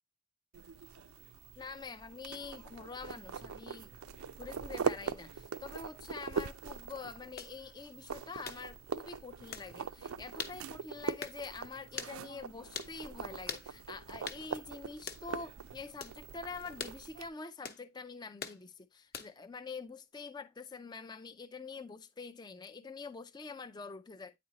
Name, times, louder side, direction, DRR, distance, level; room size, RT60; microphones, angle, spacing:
sound 1, 0.5-17.3, right 6 dB, 85° right, 0.5 m, -42 dB
voice 1, 1.6-3.9 4.4-24.3, left 4 dB, 20° left, 0.3 m, -46 dB
sound 2, 7.4-7.5 8.4-8.6 9.5-9.7 10.4-10.6 11.2-11.4 12.0-12.2 12.7-12.9 13.5-13.7 14.3-14.4 15.1-15.2 16.0-16.2 16.8-17.0 17.6-17.8 18.4-18.6 19.1-19.4, left 6 dB, 45° left, 0.9 m, -41 dB
9.3 x 4.2 x 2.8 m
head